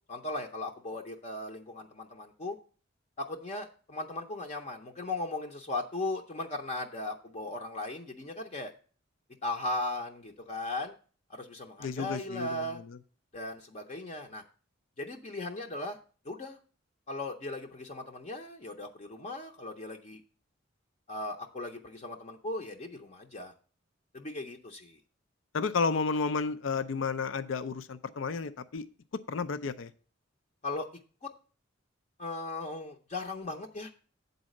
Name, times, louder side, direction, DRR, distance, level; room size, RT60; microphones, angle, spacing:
voice 1, 0.1-2.6 3.2-8.7 9.4-10.9 11.3-12.8 13.3-14.4 15.0-16.0 16.2-16.6 17.1-20.2 21.1-23.5 24.1-25.0 30.6-30.9 31.2-31.3 32.2-33.9, left 2 dB, 35° left, 2 dB, 0.6 m, -37 dB
voice 2, 11.8-13.0 25.5-28.8 29.3-29.9, left 4 dB, 80° left, 13 dB, 0.5 m, -32 dB
8.5 x 4.0 x 6.4 m, 0.40 s
head